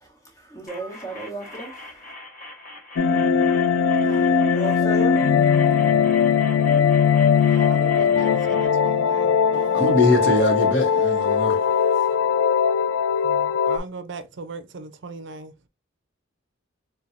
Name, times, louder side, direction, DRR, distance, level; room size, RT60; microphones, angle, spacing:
voice 1, 0.5-1.8 4.4-5.2, right 2 dB, 15° left, 1.2 m, -33 dB
sound 1, 0.7-8.7, left 2 dB, 45° left, 1.3 m, -42 dB
sound 2, 3.0-13.8, left 7 dB, 85° left, 0.4 m, -20 dB
voice 2, 3.9-4.4 7.3-9.8 13.2-15.5, right 3 dB, 65° right, 0.5 m, -39 dB
voice 3, 9.7-11.7, left 2 dB, 70° left, 1.0 m, -22 dB
4.3 x 2.3 x 2.6 m
head